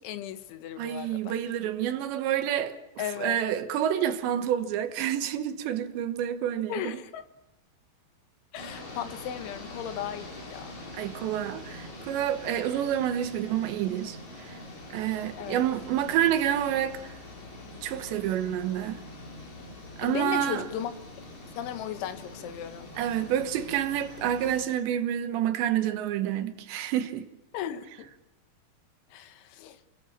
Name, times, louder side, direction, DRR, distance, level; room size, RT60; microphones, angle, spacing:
voice 1, 0.0-1.4 3.0-3.4 6.7-7.2 8.5-10.8 15.4-15.6 20.0-20.9 21.6-22.9 27.5-28.1 29.1-29.8, left 10 dB, 85° left, 3.8 m, -36 dB
voice 2, 0.8-2.8 3.2-6.9 10.9-14.2 14.9-17.0 17.8-19.0 20.0-20.6 23.0-27.3, right 10 dB, 75° right, 3.4 m, -28 dB
sound 1, 8.6-24.6, left 2 dB, 40° left, 5.6 m, -44 dB
29.5 x 19.5 x 7.4 m
omnidirectional pair, 5.3 m